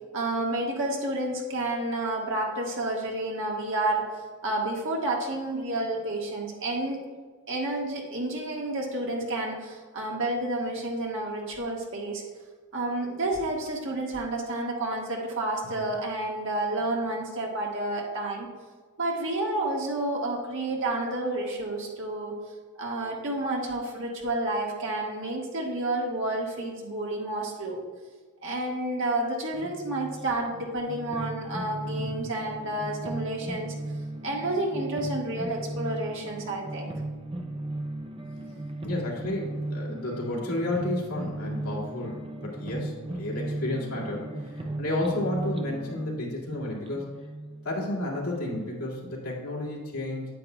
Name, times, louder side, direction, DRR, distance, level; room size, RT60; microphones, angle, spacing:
voice 1, 0.1-4.1 4.4-7.0 7.5-12.2 12.7-18.5 19.0-22.4 22.8-27.8 28.4-33.7 34.2-36.9, right 2 dB, 60° right, -1 dB, 1.5 m, -30 dB
sound 1, 29.5-48.6, right 1 dB, 25° right, 0.5 m, -36 dB
voice 2, 32.0-32.3 38.8-44.3 44.8-47.1 47.6-50.3, left 1 dB, 70° left, -4 dB, 2.3 m, -32 dB
9.2 x 9.1 x 2.3 m, 1.4 s
head